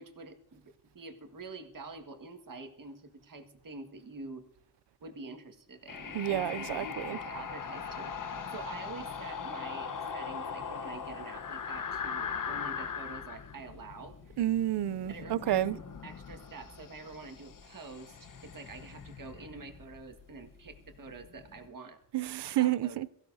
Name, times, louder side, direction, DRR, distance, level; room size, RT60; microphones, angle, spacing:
voice 1, 0.0-4.4 5.0-14.3 15.1-22.0 22.4-23.1, right 3 dB, 50° right, 1.7 m, -47 dB
sound 1, 5.9-21.7, left 6 dB, 45° left, 1.0 m, -40 dB
voice 2, 6.1-7.2 14.4-15.8 22.1-23.1, right 13 dB, 65° right, 0.5 m, -30 dB
22.5 x 15.5 x 2.7 m
wide cardioid pair, 105°, 43 cm